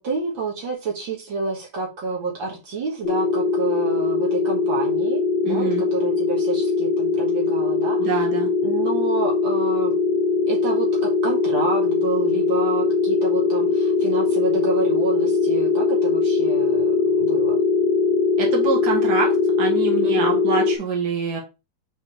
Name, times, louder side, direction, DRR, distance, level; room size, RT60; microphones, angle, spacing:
voice 1, 0.0-8.2 8.6-9.9 10.5-17.6 20.0-20.4, right 3 dB, 70° right, -2 dB, 2.2 m, -29 dB
sound 1, 3.0-20.8, left 4 dB, 50° left, 0.8 m, -21 dB
voice 2, 5.5-5.8 8.0-8.5 18.4-19.3 19.6-21.4, right 5 dB, 50° right, 0 dB, 2.1 m, -25 dB
5.2 x 4.0 x 4.7 m, 0.27 s
omnidirectional pair, 2.2 m